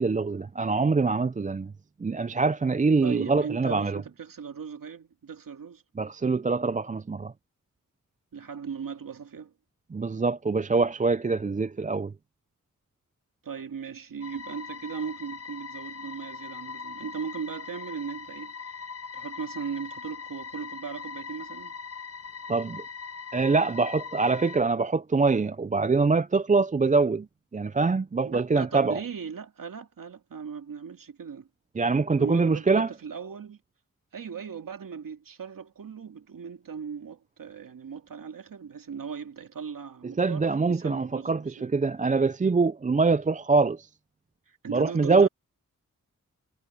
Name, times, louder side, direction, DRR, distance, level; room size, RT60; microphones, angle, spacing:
voice 1, 0.0-1.7 2.0-4.0 6.0-7.3 9.9-12.1 22.5-22.8 23.3-27.3 27.5-29.0 31.8-32.9 40.0-43.9 44.7-45.3, right 4 dB, 25° right, 0.5 m, -24 dB
voice 2, 3.0-5.8 8.3-9.5 13.4-18.7 19.1-21.7 28.2-31.5 32.2-33.6 34.1-41.7 44.5-45.3, right 6 dB, 85° right, 2.4 m, -38 dB
sound 1, 14.2-24.6, left 6 dB, 45° left, 1.2 m, -41 dB
wide cardioid pair, 70°, 33 cm